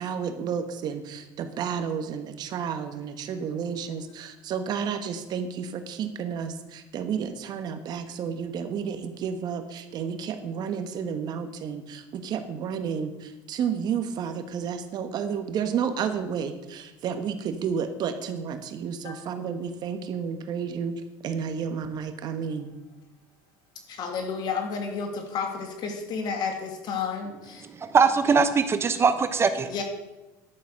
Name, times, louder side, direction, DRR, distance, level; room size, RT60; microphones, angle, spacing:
voice 1, 0.0-22.7, right 7 dB, 50° right, 9 dB, 1.3 m, -31 dB
voice 2, 23.9-27.6 29.6-29.8, left 5 dB, 55° left, 3 dB, 2.6 m, -31 dB
voice 3, 27.8-29.7, right 5 dB, 30° right, 10 dB, 0.8 m, -21 dB
11.5 x 6.9 x 6.4 m, 1.0 s
supercardioid pair, 95°, 9 cm